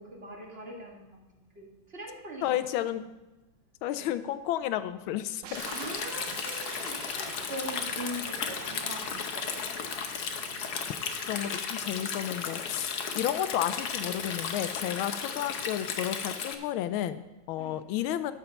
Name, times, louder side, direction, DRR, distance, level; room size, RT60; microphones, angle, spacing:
voice 1, 0.0-2.6 2.9-3.0 4.0-4.1 5.6-9.7 17.6-17.8, right 1 dB, 30° right, -1 dB, 1.9 m, -42 dB
voice 2, 2.4-3.0 3.8-5.6 11.3-18.3, left 12 dB, 85° left, 12 dB, 1.4 m, -32 dB
sound 1, 5.4-15.7, right 8 dB, 70° right, 1.3 m, -47 dB
Stream, 5.5-16.5, left 6 dB, 60° left, 1.2 m, -35 dB
14.0 x 5.7 x 5.2 m, 1.1 s
omnidirectional pair, 2.2 m